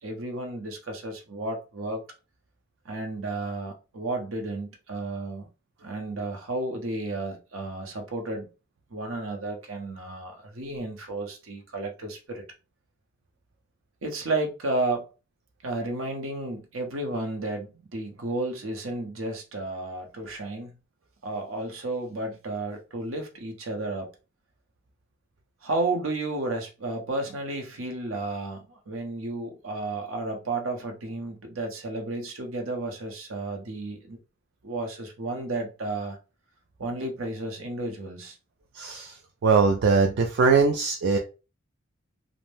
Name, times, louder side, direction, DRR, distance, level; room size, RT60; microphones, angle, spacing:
voice 1, 0.0-2.0 2.8-5.5 5.8-8.5 8.9-12.4 14.0-15.0 15.6-20.7 21.2-24.1 25.6-34.2 34.6-36.2 36.8-38.4, right 2 dB, 75° right, 0.7 m, -32 dB
voice 2, 38.7-41.2, right 4 dB, 55° right, 0.3 m, -22 dB
2.6 x 2.0 x 3.2 m
head